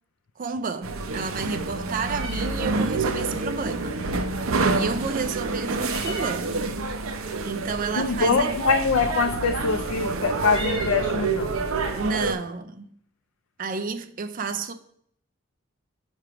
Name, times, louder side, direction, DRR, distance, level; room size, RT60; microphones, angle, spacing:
voice 1, 0.4-4.0 4.5-6.8 7.4-8.5 11.9-12.9 13.6-14.7, right 4 dB, 40° right, 0.4 m, -31 dB
sound 1, 0.8-12.3, right 3 dB, 90° right, 0.6 m, -28 dB
Meow, 1.5-11.6, right 1 dB, 20° right, 1.4 m, -43 dB
voice 2, 7.9-11.6, left 4 dB, 80° left, 0.4 m, -24 dB
5.9 x 3.3 x 5.7 m
head